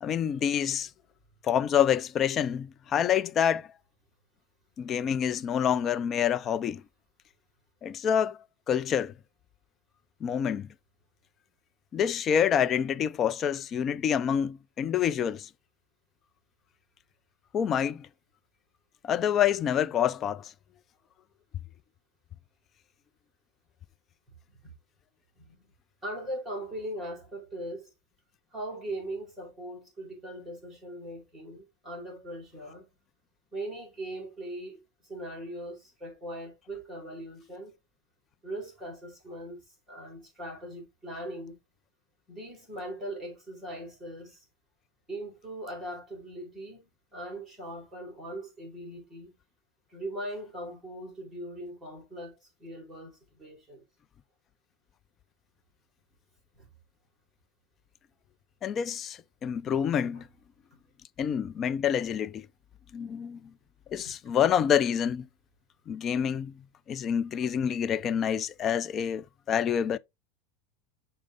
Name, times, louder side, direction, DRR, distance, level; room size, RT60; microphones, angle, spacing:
voice 1, 0.0-0.9 1.4-3.7 4.8-6.8 7.8-8.4 8.7-9.1 10.2-10.7 11.9-15.5 17.5-18.1 19.0-20.5 58.6-60.3 61.2-62.5 62.9-63.5 63.9-65.3 65.9-66.5 66.9-70.0, left 8 dB, 30° left, 0.4 m, -27 dB
voice 2, 25.4-25.7 26.0-27.9 28.5-32.9 33.5-37.7 38.4-41.6 42.3-44.4 45.1-49.3 49.9-53.8 56.6-56.7 60.1-60.2 64.0-64.1, right 1 dB, 5° right, 4.4 m, -40 dB
6.4 x 4.4 x 3.6 m
supercardioid pair, 145°, 0 cm